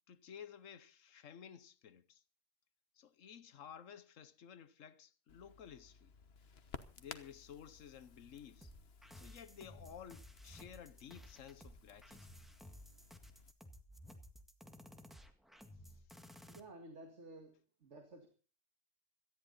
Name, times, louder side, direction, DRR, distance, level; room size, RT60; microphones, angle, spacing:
voice 1, 0.1-2.2 2.9-6.1 6.9-8.7 9.2-12.3 15.9-16.0, left 8 dB, 85° left, 1.3 m, -54 dB
Crackle, 5.3-13.5, left 5 dB, 55° left, 1.4 m, -57 dB
sound 1, 8.6-16.6, equal, ahead, 1.7 m, -56 dB
voice 2, 16.5-18.3, right 2 dB, 65° right, 2.5 m, -54 dB
18.0 x 14.0 x 4.2 m
omnidirectional pair, 1.3 m